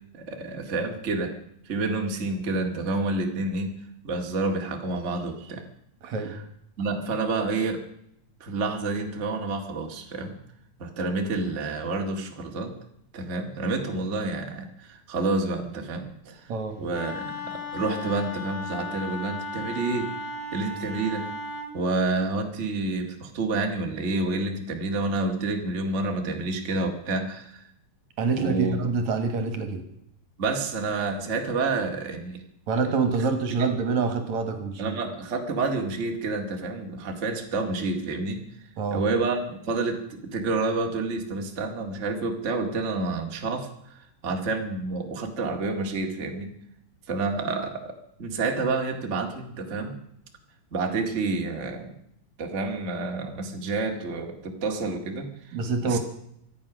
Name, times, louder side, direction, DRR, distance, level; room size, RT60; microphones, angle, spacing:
voice 1, 0.1-1.4 1.6-3.7 4.0-5.6 6.0-6.4 6.8-7.8 8.4-10.4 10.8-12.7 13.1-16.5 16.8-20.1 20.5-21.3 21.7-27.6 28.3-28.8 30.4-32.4 33.6-33.7 34.8-38.4 38.9-46.5 47.1-49.9 50.7-51.9 52.4-56.0, right 3 dB, 25° right, 3 dB, 1.9 m, -29 dB
voice 2, 6.0-6.4 16.5-16.8 28.2-29.8 32.7-34.9 38.8-39.0 55.5-56.0, right 4 dB, 65° right, 8 dB, 2.8 m, -26 dB
Wind instrument woodwind instrument, 16.9-21.7, left 2 dB, 70° left, 3.3 m, -35 dB
25.0 x 8.6 x 6.1 m, 0.73 s
omnidirectional pair, 3.6 m